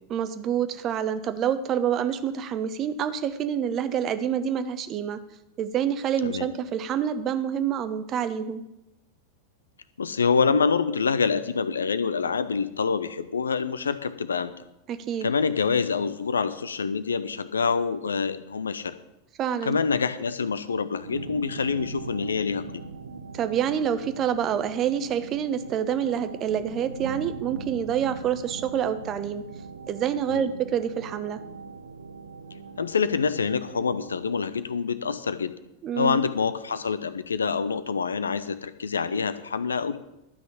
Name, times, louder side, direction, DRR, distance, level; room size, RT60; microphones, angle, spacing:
voice 1, 0.1-5.2 5.6-8.6 14.9-15.3 19.4-19.8 23.3-29.4 29.9-31.4 35.8-36.2, right 9 dB, 30° right, 11 dB, 1.0 m, -27 dB
voice 2, 10.0-14.5 15.2-18.9 19.6-22.8 30.3-30.4 32.8-35.5 36.0-40.0, left 5 dB, 70° left, 13 dB, 0.7 m, -26 dB
sound 1, 21.0-34.3, right 4 dB, 75° right, 0.8 m, -41 dB
12.0 x 6.2 x 8.4 m, 0.90 s
figure-of-eight pair, 90°, 0 cm